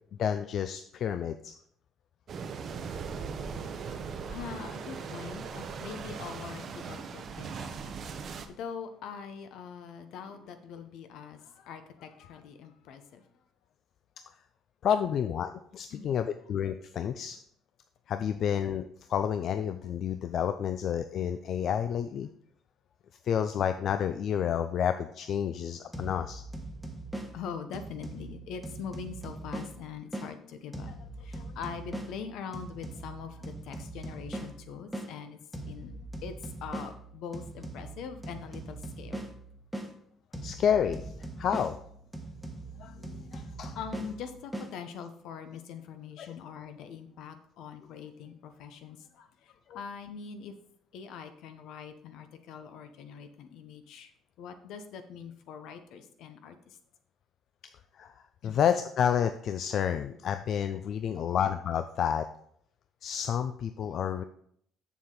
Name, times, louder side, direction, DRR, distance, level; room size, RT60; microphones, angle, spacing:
voice 1, 0.2-1.5 14.8-17.4 18.1-22.3 23.2-26.4 40.4-41.8 42.8-43.8 46.2-46.4 49.7-49.8 58.0-58.1 58.4-62.3 63.0-64.2, left 8 dB, 55° left, 9 dB, 0.4 m, -30 dB
sound 1, 2.3-8.5, right 5 dB, 45° right, 0.7 m, -39 dB
voice 2, 4.3-7.5 8.5-13.2 15.9-16.1 27.3-35.4 35.7-39.2 43.2-43.4 43.8-49.3 49.7-50.5 50.9-54.1 54.4-56.6 58.4-58.6, left 7 dB, 75° left, 8 dB, 0.9 m, -43 dB
sound 2, 25.9-30.3 30.7-35.1 35.5-39.9 40.3-44.7, right 1 dB, ahead, 1.2 m, -41 dB
7.0 x 6.6 x 3.9 m, 0.67 s
cardioid pair, 115°, 0 cm